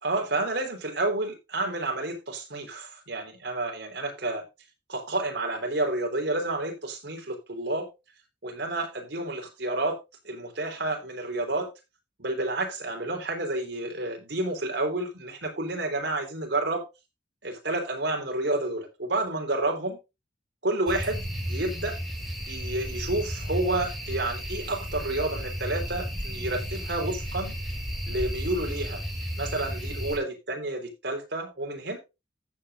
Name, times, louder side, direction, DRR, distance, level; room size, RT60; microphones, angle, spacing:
voice 1, 0.0-4.4 4.9-7.9 8.4-10.0 10.2-11.7 12.2-16.8 17.4-20.0 20.6-22.0 22.5-27.6 28.1-29.0 29.4-32.0, right 2 dB, 70° right, 3.7 m, -30 dB
sound 1, 20.9-30.2, equal, ahead, 2.6 m, -33 dB
14.5 x 8.1 x 2.5 m
head